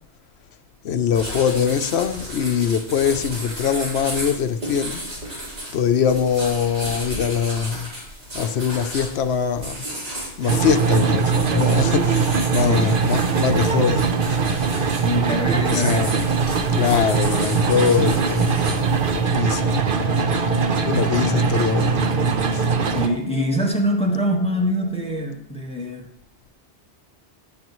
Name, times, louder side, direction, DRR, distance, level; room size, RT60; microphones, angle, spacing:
voice 1, 0.8-5.0 5.7-7.9 8.3-9.8 10.4-14.4 15.7-16.3 16.7-18.8 19.1-19.8 20.9-22.1 22.5-22.7, left 7 dB, 70° left, 1.0 m, -22 dB
sound 1, 1.1-19.2, right 1 dB, 80° right, 3.9 m, -34 dB
sound 2, 10.5-23.1, right 5 dB, 55° right, 0.9 m, -21 dB
voice 2, 12.6-13.0 15.0-16.2 22.9-26.1, equal, 5° left, 1.5 m, -24 dB
Wind instrument woodwind instrument, 19.9-25.4, left 7 dB, 30° right, 3.5 m, -35 dB
15.5 x 7.5 x 3.1 m
omnidirectional pair, 1.2 m